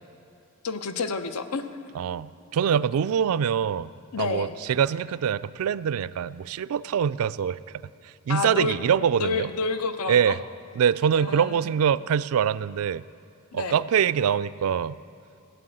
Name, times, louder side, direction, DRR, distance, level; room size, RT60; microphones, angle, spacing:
voice 1, 0.6-1.7 4.1-4.6 8.3-8.7 9.2-10.4 11.1-11.7 13.5-13.8, left 4 dB, 90° left, 9 dB, 0.8 m, -29 dB
voice 2, 1.9-3.9 4.2-7.6 8.0-9.5 10.1-10.4 10.8-13.0 13.5-15.0, right 8 dB, 70° right, 19 dB, 0.3 m, -24 dB
17.0 x 8.9 x 7.7 m, 2.5 s
head